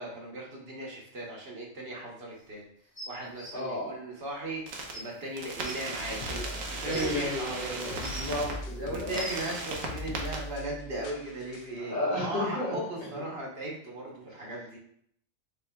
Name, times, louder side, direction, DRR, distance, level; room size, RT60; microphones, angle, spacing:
voice 1, 0.0-2.6 3.1-4.6 4.9-6.3 6.7-7.9 8.7-14.8, right 2 dB, 50° right, -2 dB, 1.1 m, -37 dB
sound 1, 2.9-3.5 4.5-4.6 4.9-5.0 5.6-5.7 6.5-7.1 7.8-8.4 8.9-9.5 10.5-10.6, equal, 10° right, 0.7 m, -42 dB
voice 2, 3.5-3.9 6.3-6.6 6.9-9.2 11.8-12.7, left 1 dB, 85° left, -5 dB, 2.2 m, -33 dB
sound 2, 4.7-4.9 5.4-8.5 8.9-10.4, right 3 dB, 80° right, 1.2 m, -37 dB
sound 3, 6.0-11.8, left 2 dB, 65° left, 0.7 m, -42 dB
5.5 x 3.6 x 2.3 m, 0.66 s
omnidirectional pair, 1.4 m